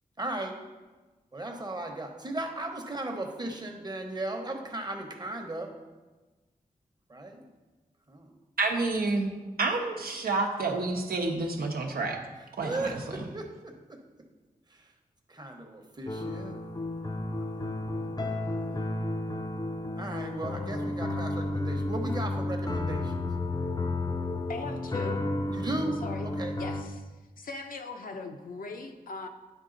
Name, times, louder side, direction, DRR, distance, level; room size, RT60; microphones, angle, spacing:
voice 1, 0.2-0.5 1.3-5.7 7.1-7.5 8.1-8.3 12.6-14.0 14.7-14.9 15.3-16.6 17.4-18.9 20.0-23.1 25.5-26.0 26.2-26.5, right 2 dB, 25° right, 3 dB, 0.9 m, -37 dB
voice 2, 8.6-9.3 9.6-12.2 12.6-13.2, right 3 dB, 85° right, 2 dB, 0.9 m, -29 dB
sound 1, 16.1-26.8, left 2 dB, 25° left, 0.5 m, -32 dB
voice 3, 24.5-25.2 25.9-26.3 26.6-27.1 27.4-29.3, left 3 dB, 65° left, 4 dB, 0.7 m, -39 dB
9.9 x 3.6 x 3.9 m, 1.2 s
wide cardioid pair, 75°, 15 cm